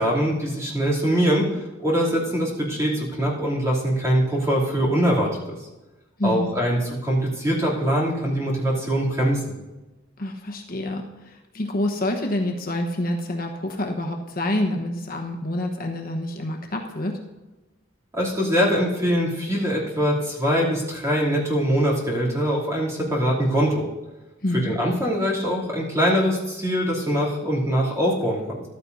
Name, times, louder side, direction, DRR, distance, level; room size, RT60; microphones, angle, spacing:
voice 1, 0.0-5.3 6.2-9.4 18.1-23.9 24.6-28.6, equal, 15° right, -4 dB, 2.9 m, -23 dB
voice 2, 6.2-6.5 10.2-17.1 24.4-24.7, left 1 dB, 50° left, 2 dB, 1.1 m, -27 dB
14.0 x 12.5 x 2.7 m, 1.1 s
head